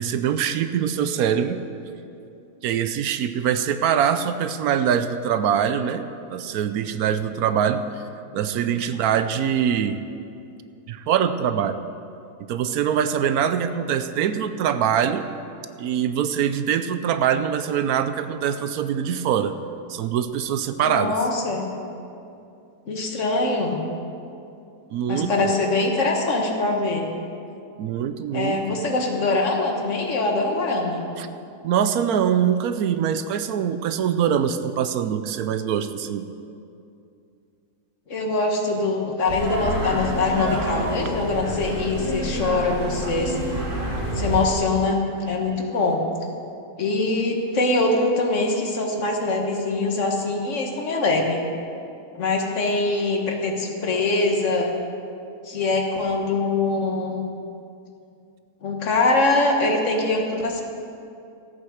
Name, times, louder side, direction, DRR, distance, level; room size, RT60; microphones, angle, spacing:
voice 1, 0.0-1.6 2.6-7.8 8.3-10.0 10.9-11.8 12.5-15.3 15.8-19.5 19.9-21.2 24.9-25.5 27.8-28.6 31.2-31.3 31.6-36.2, right 8 dB, 80° right, 10 dB, 1.1 m, -23 dB
voice 2, 20.9-21.7 22.9-23.8 25.1-27.1 28.3-31.1 38.1-43.4 44.1-45.0 45.3-46.0 46.8-51.4 52.1-54.7 55.4-57.3 58.6-60.6, left 2 dB, 55° left, 1 dB, 1.7 m, -23 dB
sound 1, 39.3-44.5, right 1 dB, 55° right, 2.8 m, -28 dB
14.0 x 8.7 x 6.4 m, 2.6 s
omnidirectional pair, 1.6 m